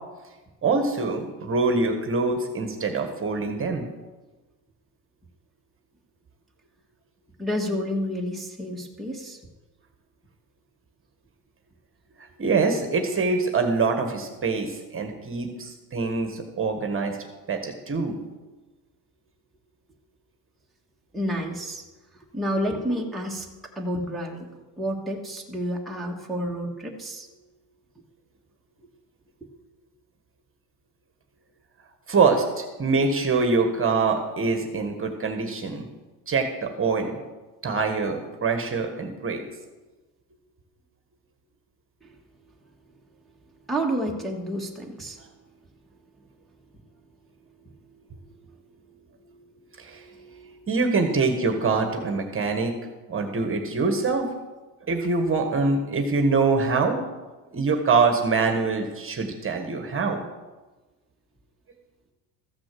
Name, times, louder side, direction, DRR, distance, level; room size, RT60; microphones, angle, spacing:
voice 1, 0.6-3.9 12.4-17.2 17.5-18.2 32.1-35.9 36.3-37.2 37.6-39.4 49.8-50.0 50.7-52.7 53.1-54.3 54.9-57.0 57.5-60.2, right 4 dB, 25° right, 5 dB, 1.5 m, -24 dB
voice 2, 7.4-9.4 21.1-21.8 22.3-27.3 42.0-42.2 43.7-45.3 47.8-50.7, equal, ahead, -2 dB, 1.5 m, -31 dB
14.5 x 6.2 x 7.6 m, 1.2 s
cardioid pair, 130°, 49 cm